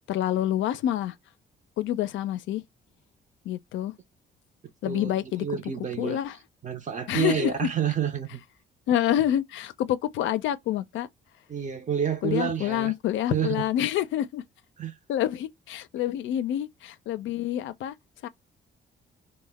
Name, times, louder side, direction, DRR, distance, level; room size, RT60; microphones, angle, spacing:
voice 1, 0.1-1.1 1.8-2.6 3.5-3.9 4.8-5.5 6.0-6.4 7.1-7.7 8.9-11.1 12.2-14.4 15.1-17.9 18.2-18.3, left 12 dB, 75° left, 0.4 m, -27 dB
voice 2, 4.8-6.2 6.6-8.4 11.5-12.9 13.3-13.5 14.8-15.0, right 7 dB, 40° right, 0.5 m, -29 dB
2.1 x 2.0 x 3.3 m
cardioid pair, 90°, 20 cm